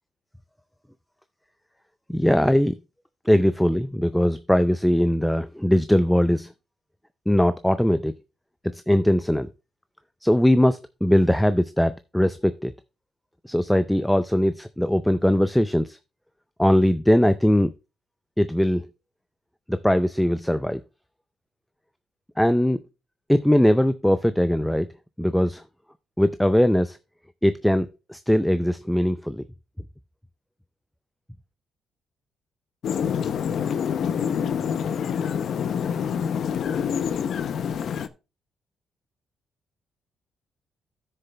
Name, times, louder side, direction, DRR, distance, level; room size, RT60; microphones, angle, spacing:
voice 1, 2.1-2.8 3.3-6.5 7.3-8.1 8.6-9.5 10.2-12.7 13.4-16.0 16.6-17.7 18.4-18.8 19.7-20.8 22.4-22.8 23.3-24.9 25.2-25.6 26.2-27.0 27.4-29.4, equal, 5° left, 0.4 m, -20 dB
sound 1, 32.8-38.1, left 7 dB, 65° left, 0.5 m, -26 dB
13.5 x 6.6 x 2.2 m
cardioid pair, 90°, 0 cm